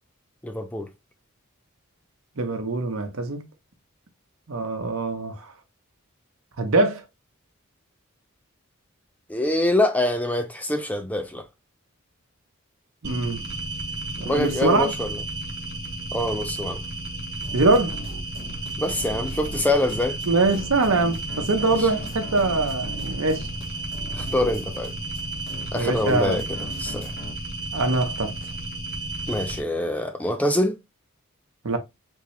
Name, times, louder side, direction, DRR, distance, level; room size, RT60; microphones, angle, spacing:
voice 1, 0.4-0.9 9.3-11.4 14.2-15.2 16.1-16.8 18.8-20.2 21.8-21.9 24.1-24.9 25.7-27.1 29.3-30.8, left 1 dB, 5° left, 0.4 m, -25 dB
voice 2, 2.4-3.4 4.5-5.4 6.6-7.0 13.0-13.4 14.2-14.9 17.5-18.0 20.3-23.5 25.7-26.4 27.7-28.3 31.6-31.8, right 3 dB, 70° right, 0.8 m, -23 dB
sound 1, 13.0-29.6, right 2 dB, 50° right, 1.1 m, -33 dB
sound 2, 17.4-27.3, left 1 dB, 75° left, 1.3 m, -39 dB
3.5 x 2.8 x 3.2 m
head